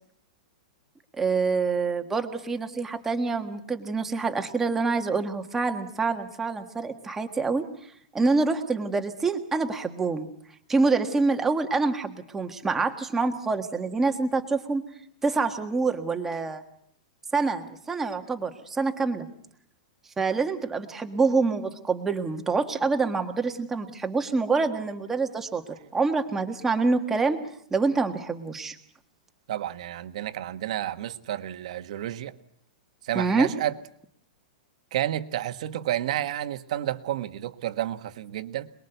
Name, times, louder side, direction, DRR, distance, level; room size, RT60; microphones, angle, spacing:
voice 1, 1.2-7.7 8.1-10.3 10.7-14.9 15.2-16.6 17.3-19.3 20.2-25.6 25.9-27.4 27.7-28.8 33.1-33.5, right 4 dB, 5° right, 5 dB, 1.6 m, -26 dB
voice 2, 29.5-32.3 33.0-33.7 34.9-38.7, right 12 dB, 50° right, 10 dB, 1.4 m, -30 dB
27.0 x 21.0 x 8.1 m, 0.66 s
supercardioid pair, 175°, 5 cm